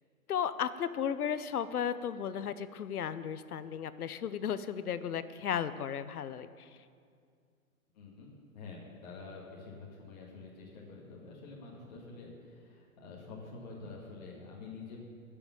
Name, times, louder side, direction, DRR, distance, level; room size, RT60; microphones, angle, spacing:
voice 1, 0.3-6.7, left 8 dB, 80° left, 13 dB, 0.8 m, -35 dB
voice 2, 7.9-15.0, left 3 dB, 30° left, -4 dB, 1.8 m, -48 dB
15.5 x 7.0 x 7.2 m, 2.2 s
hypercardioid pair, 175°, 44 cm